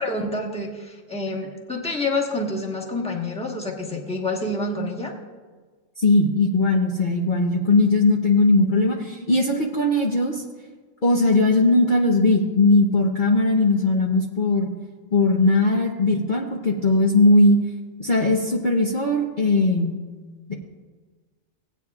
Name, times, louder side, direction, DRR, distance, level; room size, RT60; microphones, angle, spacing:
voice 1, 0.0-5.1, left 2 dB, 5° left, -1 dB, 1.2 m, -28 dB
voice 2, 6.0-10.4 11.0-14.7 15.1-17.6 18.0-20.0 20.5-20.6, left 2 dB, 45° left, -1 dB, 0.9 m, -19 dB
18.0 x 8.9 x 2.4 m, 1.4 s
omnidirectional pair, 1.3 m